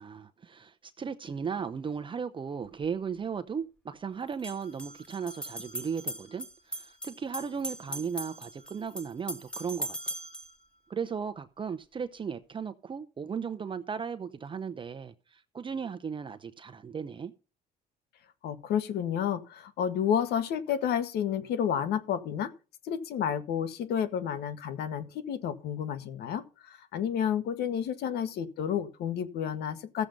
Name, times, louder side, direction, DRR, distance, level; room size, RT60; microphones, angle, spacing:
voice 1, 0.0-10.1 10.9-17.3, right 6 dB, 30° right, 0.8 m, -36 dB
sound 1, 2.6-2.7 4.3-10.5, right 1 dB, 5° left, 2.1 m, -40 dB
voice 2, 18.4-22.5 22.8-30.1, left 8 dB, 75° left, 1.6 m, -30 dB
14.5 x 7.5 x 5.3 m
cardioid pair, 110°, 17 cm